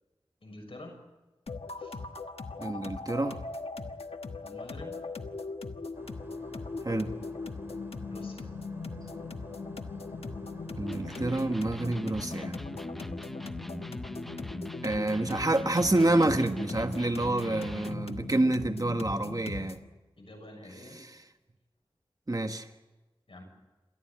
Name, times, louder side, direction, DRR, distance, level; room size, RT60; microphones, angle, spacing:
voice 1, 0.4-1.0 1.8-2.0 4.4-5.0 8.1-8.5 20.2-21.0 23.3-23.4, left 1 dB, 65° left, 6.6 m, -47 dB
sound 1, 1.5-19.9, left 3 dB, 85° left, 1.3 m, -39 dB
voice 2, 2.6-3.4 6.8-7.1 10.8-12.5 14.8-19.8 22.3-22.7, right 2 dB, 40° right, 1.4 m, -28 dB
sound 2, 5.9-12.1, equal, 25° right, 3.6 m, -51 dB
Electric guitar, 10.9-18.2, equal, ahead, 0.7 m, -41 dB
28.5 x 14.0 x 8.8 m
wide cardioid pair, 60°, 10 cm